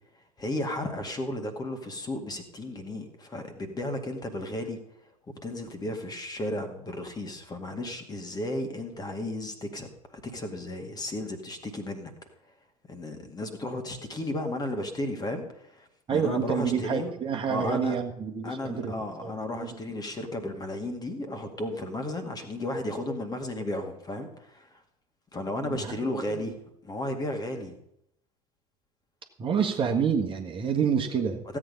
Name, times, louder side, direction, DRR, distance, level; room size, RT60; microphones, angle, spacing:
voice 1, 0.1-5.1 5.4-12.1 12.9-17.1 17.5-18.0 18.4-24.8 25.3-26.6 26.8-27.8 31.5-31.6, left 1 dB, 20° left, 6 dB, 2.1 m, -34 dB
voice 2, 16.1-18.9 19.2-19.7 25.6-26.4 29.4-31.6, right 7 dB, 25° right, 2 dB, 1.6 m, -28 dB
16.0 x 8.7 x 5.4 m, 0.76 s
figure-of-eight pair, 75°, 19 cm